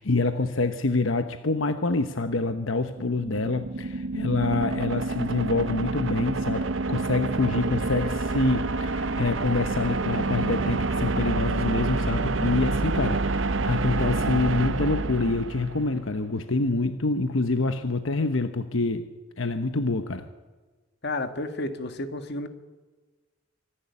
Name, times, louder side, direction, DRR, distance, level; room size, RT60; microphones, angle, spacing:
voice 1, 0.0-19.1 19.4-20.3, left 3 dB, 80° left, 8 dB, 1.0 m, -26 dB
sound 1, 2.9-15.9, right 3 dB, 70° right, 0.8 m, -28 dB
voice 2, 21.0-22.5, left 2 dB, 55° left, 8 dB, 1.7 m, -31 dB
25.0 x 11.5 x 9.8 m, 1.3 s
head